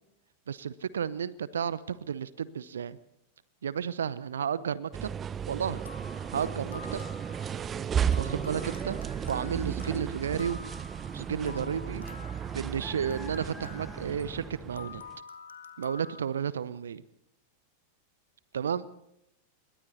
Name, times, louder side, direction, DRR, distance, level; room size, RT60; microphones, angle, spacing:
voice 1, 0.5-3.0 3.6-5.1 5.5-5.8 6.3-7.0 8.2-9.0 9.3-10.7 11.1-12.0 12.5-15.0 15.8-17.0 18.5-18.9, right 7 dB, 65° right, 19 dB, 0.8 m, -32 dB
sound 1, 4.9-15.2, right 8 dB, 25° right, 0.9 m, -34 dB
sound 2, 5.6-16.2, left 5 dB, 70° left, 1.7 m, -49 dB
sound 3, 7.3-7.4 7.7-10.1 10.3-10.7 11.0-11.1 11.5-14.6, left 1 dB, ahead, 5.1 m, -52 dB
28.0 x 22.5 x 4.2 m, 0.81 s
figure-of-eight pair, 90°, 0 cm